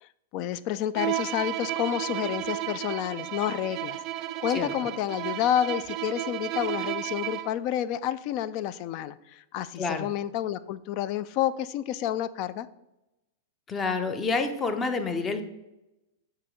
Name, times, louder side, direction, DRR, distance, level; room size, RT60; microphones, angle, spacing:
voice 1, 0.0-4.0 4.4-12.7, left 11 dB, 45° left, 16 dB, 0.3 m, -29 dB
Bowed string instrument, 0.9-7.6, right 15 dB, 40° right, 0.3 m, -33 dB
voice 2, 9.8-10.1 13.7-15.4, left 4 dB, 20° left, 8 dB, 0.7 m, -28 dB
6.6 x 3.0 x 4.9 m, 0.94 s
figure-of-eight pair, 100°, 0 cm